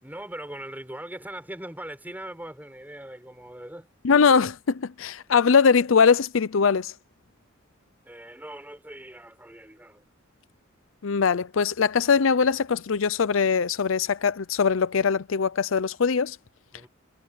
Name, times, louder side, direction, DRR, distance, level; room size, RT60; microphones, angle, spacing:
voice 1, 0.0-3.9 8.0-10.0 16.7-16.9, right 1 dB, 10° right, 6.5 m, -40 dB
voice 2, 4.0-6.9 11.0-16.4, left 5 dB, 75° left, 0.6 m, -21 dB
head